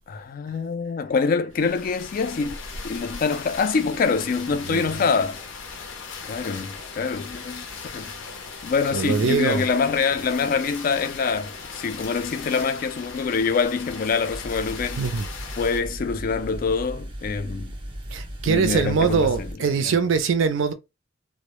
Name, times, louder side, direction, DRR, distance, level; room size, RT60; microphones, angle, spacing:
voice 1, 0.1-2.6 2.8-5.4 6.2-7.7 7.9-8.1 8.6-15.0 15.6-17.7 18.4-19.5 19.8-20.0, left 5 dB, 45° left, 0.3 m, -25 dB
sound 1, 1.5-15.8, left 5 dB, 85° left, 0.6 m, -38 dB
voice 2, 8.9-9.7 15.0-15.3 18.1-20.7, right 5 dB, 80° right, 0.4 m, -22 dB
sound 2, 14.3-19.6, equal, 25° right, 0.5 m, -36 dB
2.0 x 2.0 x 2.9 m
head